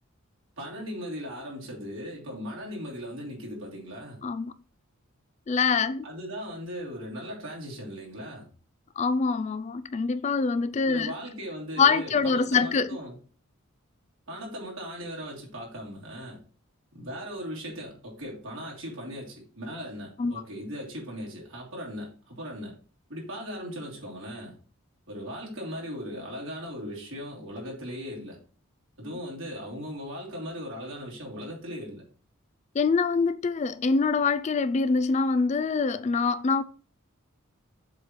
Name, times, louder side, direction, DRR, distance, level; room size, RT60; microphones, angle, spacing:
voice 1, 0.6-4.2 6.0-8.5 10.9-13.1 14.3-16.4 16.9-22.8 23.1-24.6 25.1-28.4 29.0-32.0, equal, 70° right, 3.1 m, -38 dB
voice 2, 4.2-4.5 5.5-6.0 9.0-11.1 11.8-12.9 20.2-20.3 32.7-36.6, left 4 dB, 30° left, 0.3 m, -24 dB
7.5 x 3.1 x 5.7 m
head